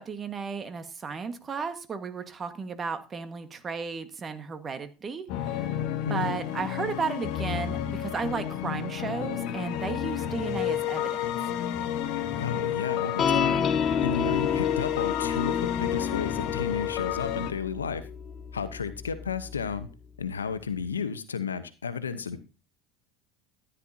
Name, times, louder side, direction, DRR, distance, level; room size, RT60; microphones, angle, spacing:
voice 1, 0.0-5.8 6.1-11.5, right 5 dB, 30° right, 9 dB, 1.6 m, -34 dB
sound 1, 5.3-17.5, left 10 dB, 60° left, 1.3 m, -31 dB
voice 2, 6.1-6.4 12.4-13.7 14.0-18.0 18.5-19.9 20.2-22.4, left 6 dB, 85° left, 12 dB, 0.9 m, -32 dB
sound 2, 13.2-19.8, left 7 dB, 35° left, 1.0 m, -31 dB
13.5 x 9.9 x 2.8 m, 0.32 s
hypercardioid pair, 75°, 0 cm